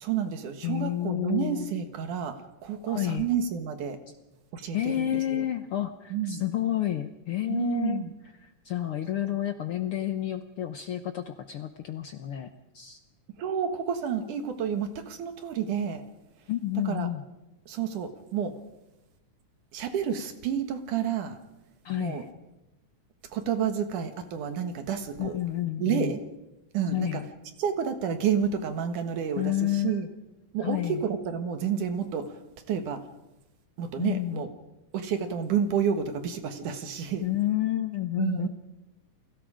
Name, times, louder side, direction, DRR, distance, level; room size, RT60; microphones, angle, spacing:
voice 1, 0.0-4.0 4.5-5.4 6.1-6.4 7.5-8.1 13.4-16.0 16.9-17.1 17.7-18.5 19.7-21.4 22.0-22.2 23.3-25.3 25.8-26.2 26.7-27.2 27.6-30.1 30.5-32.4 32.7-33.0 33.8-34.5 34.9-37.2 38.2-38.5, right 8 dB, 70° right, 7 dB, 3.0 m, -30 dB
voice 2, 0.6-1.7 2.9-3.3 4.7-8.0 8.4-13.0 16.5-17.2 21.8-22.3 25.2-26.1 26.9-27.3 29.4-30.0 30.6-31.0 34.0-34.5 37.2-38.5, left 13 dB, 75° left, 8 dB, 1.2 m, -30 dB
30.0 x 21.5 x 5.0 m, 0.98 s
omnidirectional pair, 3.8 m